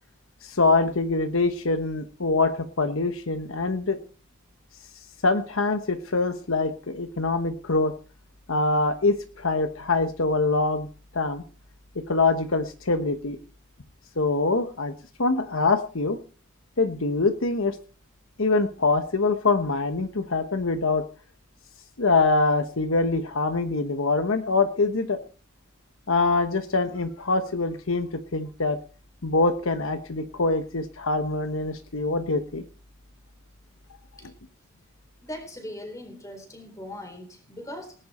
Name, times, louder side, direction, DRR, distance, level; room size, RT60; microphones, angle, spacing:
voice 1, 0.4-4.0 5.2-7.9 8.5-10.9 11.1-11.4 11.9-13.4 14.2-14.9 15.2-16.2 16.8-17.8 18.4-21.1 22.0-25.2 26.1-28.8 29.2-32.6, left 3 dB, 70° left, 8 dB, 1.1 m, -24 dB
voice 2, 35.2-38.0, left 1 dB, 15° left, 5 dB, 4.0 m, -39 dB
19.0 x 10.5 x 4.3 m, 0.39 s
head